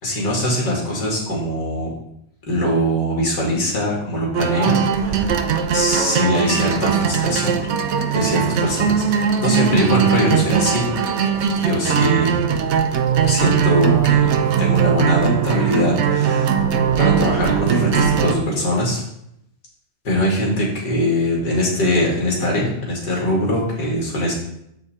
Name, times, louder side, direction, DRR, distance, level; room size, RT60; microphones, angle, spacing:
voice 1, 0.0-1.9 2.5-5.3 5.7-7.6 8.1-11.0 11.6-12.3 13.2-14.3 14.6-16.6 17.0-19.0 20.0-24.3, equal, 75° left, -3 dB, 2.9 m, -22 dB
sound 1, 4.3-18.3, right 7 dB, 65° right, 0.7 m, -19 dB
7.0 x 5.6 x 4.2 m, 0.77 s
omnidirectional pair, 1.8 m